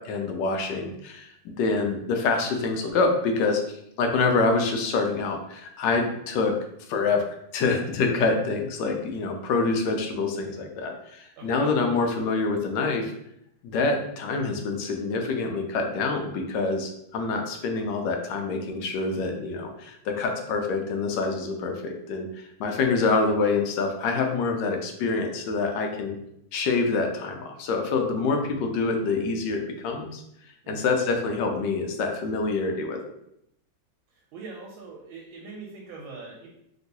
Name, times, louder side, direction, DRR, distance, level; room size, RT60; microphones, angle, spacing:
voice 1, 0.0-3.6 4.0-6.5 6.9-7.2 7.5-13.1 13.6-26.2 26.5-30.2 30.7-33.0, left 4 dB, 75° left, 3 dB, 1.1 m, -26 dB
voice 2, 11.4-11.7 30.6-31.1 34.1-36.5, right 4 dB, 85° right, -2 dB, 1.4 m, -42 dB
3.0 x 2.9 x 2.7 m, 0.76 s
omnidirectional pair, 2.2 m